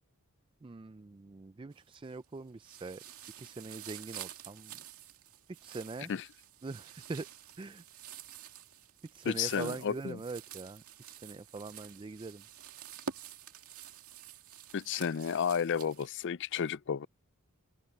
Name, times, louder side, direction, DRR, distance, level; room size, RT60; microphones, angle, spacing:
voice 1, 0.6-3.0 3.4-4.7 5.6-6.1 6.6-7.3 7.6-7.8 9.1-12.4, right 3 dB, 20° right, 0.4 m, -43 dB
sound 1, 1.7-2.2 2.6-16.1, right 8 dB, 75° right, 2.2 m, -49 dB
voice 2, 9.2-10.2 14.7-17.1, left 7 dB, 55° left, 0.4 m, -32 dB
open air
head